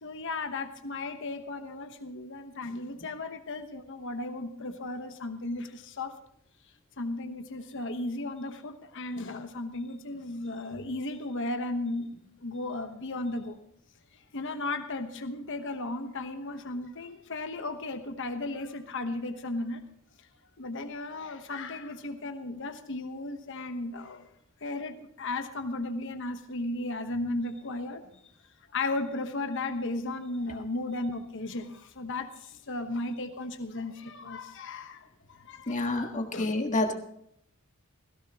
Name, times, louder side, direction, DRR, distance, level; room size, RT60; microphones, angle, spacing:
voice 1, 0.0-6.1 7.0-12.1 12.4-13.6 14.3-19.8 20.6-24.3 24.6-28.0 28.7-36.6, left 2 dB, 55° left, 7 dB, 1.1 m, -35 dB
voice 2, 35.7-36.9, left 2 dB, 35° left, 4 dB, 1.6 m, -28 dB
17.0 x 16.0 x 3.0 m, 0.72 s
head